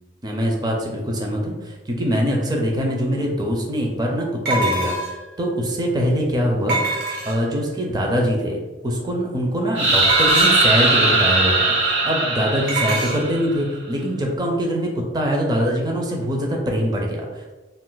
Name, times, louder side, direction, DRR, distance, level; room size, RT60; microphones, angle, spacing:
voice 1, 0.2-6.8 7.2-17.5, equal, 20° right, 0 dB, 0.5 m, -23 dB
sound 1, 2.9-3.0 4.5-5.3 6.7-7.6 10.0-10.7 12.7-13.2, right 2 dB, 55° right, 0.8 m, -24 dB
sound 2, 9.8-13.6, right 2 dB, 85° right, 0.9 m, -19 dB
2.4 x 2.4 x 3.8 m, 1.2 s
head